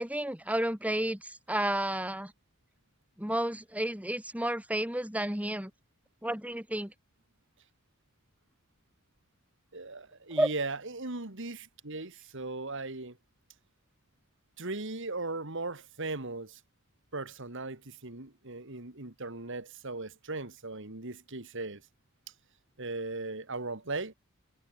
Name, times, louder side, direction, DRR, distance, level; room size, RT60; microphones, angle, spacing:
voice 1, 0.0-2.3 3.2-5.7 6.2-6.9 10.4-10.5, right 1 dB, 5° right, 2.9 m, -31 dB
voice 2, 9.7-13.2 14.6-16.6 17.1-21.8 22.8-24.1, right 3 dB, 60° right, 2.6 m, -38 dB
head